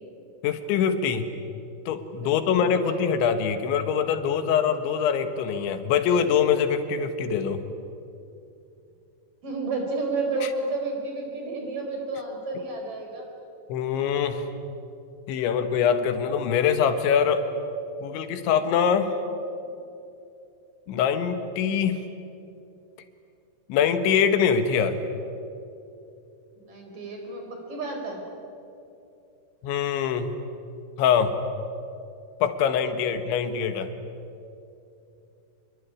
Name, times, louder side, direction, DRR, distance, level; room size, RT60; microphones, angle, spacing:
voice 1, 0.4-1.3 1.9-7.6 13.7-14.5 15.3-17.5 18.0-19.2 20.9-22.0 23.7-25.0 29.6-30.4 31.0-31.4 32.4-33.9, left 7 dB, 80° left, 9 dB, 3.7 m, -23 dB
voice 2, 2.2-3.0 9.4-13.3 19.6-19.7 26.6-28.2 33.1-33.3, right 3 dB, 45° right, 2 dB, 5.9 m, -31 dB
26.5 x 22.5 x 9.9 m, 2.7 s
omnidirectional pair, 5.3 m